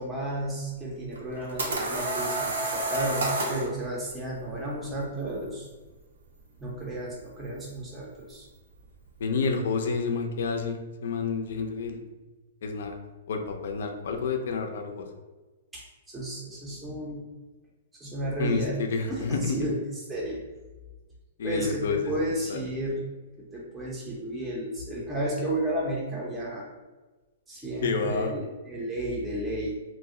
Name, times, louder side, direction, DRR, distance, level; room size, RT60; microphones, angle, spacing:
voice 1, 0.0-5.7 6.6-8.5 15.7-17.2 18.0-18.8 19.1-19.8 20.1-20.4 21.4-23.0 23.4-26.7 27.5-29.7, right 1 dB, 10° right, -5 dB, 0.5 m, -32 dB
sound 1, 1.2-3.7, right 2 dB, 90° right, 0.8 m, -29 dB
voice 2, 9.2-12.0 12.6-12.9 13.3-15.1 18.4-19.6 21.4-22.6 27.8-28.3, left 4 dB, 70° left, 4 dB, 0.4 m, -29 dB
2.5 x 2.0 x 3.6 m, 1.2 s
hypercardioid pair, 145°, 0 cm